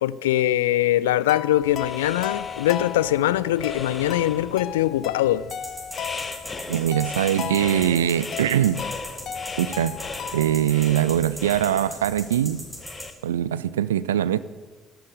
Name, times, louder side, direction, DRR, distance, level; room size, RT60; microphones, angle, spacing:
voice 1, 0.0-5.5, left 13 dB, 70° left, 0.4 m, -22 dB
sound 1, 1.3-10.7, left 9 dB, 50° left, 0.9 m, -36 dB
sound 2, 1.6-13.1, left 3 dB, 30° left, 1.5 m, -38 dB
sound 3, 5.5-13.0, equal, 10° right, 5.5 m, -38 dB
voice 2, 6.7-8.8 9.6-10.0 10.3-12.6 13.2-14.4, right 11 dB, 75° right, 0.5 m, -22 dB
13.5 x 12.0 x 8.0 m
figure-of-eight pair, 50°, 0 cm